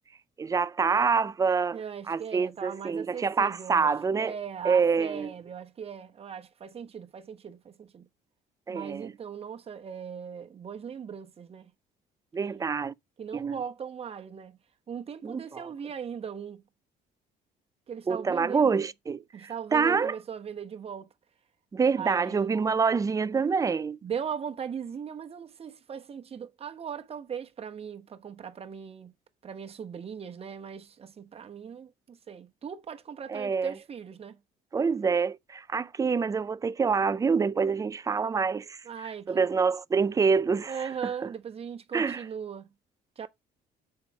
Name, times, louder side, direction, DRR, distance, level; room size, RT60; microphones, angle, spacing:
voice 1, 0.4-1.8 2.1-4.3 4.6-5.3 8.7-9.1 12.3-12.9 13.3-13.6 15.2-15.7 18.1-20.2 21.7-24.0 33.3-33.7 34.7-38.8 39.3-40.7 41.9-42.2, right 5 dB, 20° right, 0.4 m, -26 dB
voice 2, 1.7-3.9 4.2-8.1 8.7-11.7 12.4-12.7 13.2-14.6 14.9-16.6 17.9-18.8 19.3-21.1 22.0-22.6 24.0-29.1 29.4-34.4 38.8-39.4 40.7-42.7 43.2-43.3, right 7 dB, 35° right, 1.1 m, -39 dB
6.7 x 4.9 x 5.2 m
cardioid pair, 110°, 17 cm